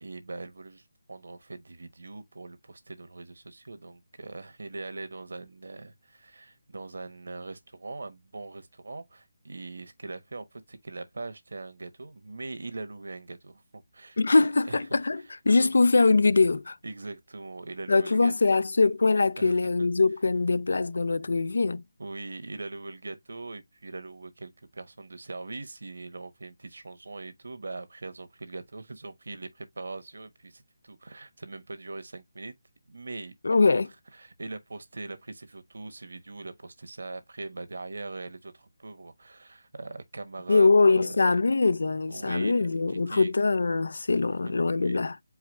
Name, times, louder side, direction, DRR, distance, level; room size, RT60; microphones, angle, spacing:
voice 1, 0.0-15.7 16.8-18.3 19.4-19.6 22.0-32.5 32.9-33.8 34.1-41.4 42.1-43.3 44.2-45.0, right 3 dB, 80° right, 1.2 m, -41 dB
voice 2, 14.2-16.8 17.9-21.8 33.4-33.9 40.5-45.2, left 3 dB, 65° left, 0.4 m, -22 dB
4.8 x 2.3 x 4.7 m
hypercardioid pair, 180°, 0 cm